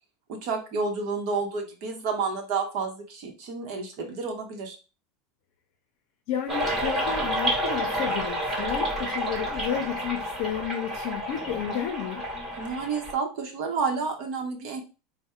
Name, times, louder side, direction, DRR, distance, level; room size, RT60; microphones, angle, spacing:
voice 1, 0.3-4.8 12.6-14.8, right 4 dB, 55° right, 3 dB, 0.9 m, -30 dB
voice 2, 6.3-12.2, left 9 dB, 55° left, 3 dB, 0.6 m, -32 dB
sound 1, 6.5-13.1, equal, 15° right, 1.1 m, -29 dB
3.5 x 2.1 x 4.3 m, 0.32 s
supercardioid pair, 160°, 0 cm